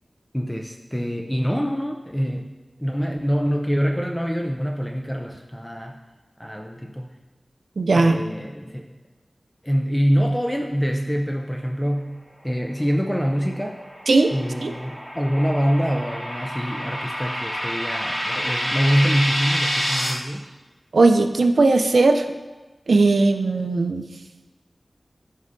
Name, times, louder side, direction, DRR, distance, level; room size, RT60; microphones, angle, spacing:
voice 1, 0.3-2.5 2.8-6.0 6.4-7.1 7.9-8.9 9.6-13.8 14.3-20.5, equal, 5° left, 2 dB, 0.5 m, -25 dB
voice 2, 7.8-8.2 14.1-14.3 14.6-14.7 20.9-22.2 22.9-24.0, right 3 dB, 85° right, 7 dB, 0.4 m, -17 dB
sound 1, 13.3-20.1, equal, 40° left, 1.6 m, -28 dB
9.3 x 5.4 x 2.6 m, 1.2 s
wide cardioid pair, 55°, 0 cm